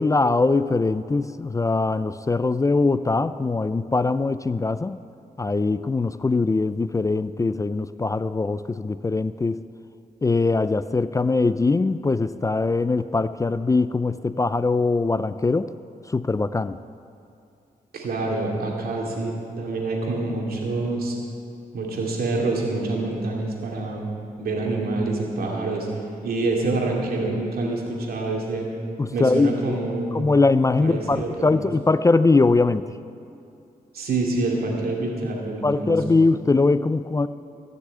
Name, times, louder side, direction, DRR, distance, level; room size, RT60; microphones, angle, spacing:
voice 1, 0.0-5.0 5.4-9.6 10.2-15.7 16.1-16.8 29.0-29.8 30.1-32.8 35.6-37.3, left 3 dB, 20° left, 14 dB, 0.3 m, -21 dB
voice 2, 17.9-21.2 21.7-24.1 24.4-25.9 26.2-28.7 29.1-30.2 30.8-31.6 33.9-36.2, right 2 dB, 80° right, -1 dB, 2.5 m, -26 dB
15.0 x 6.7 x 8.4 m, 2.6 s
cardioid pair, 75°, 15 cm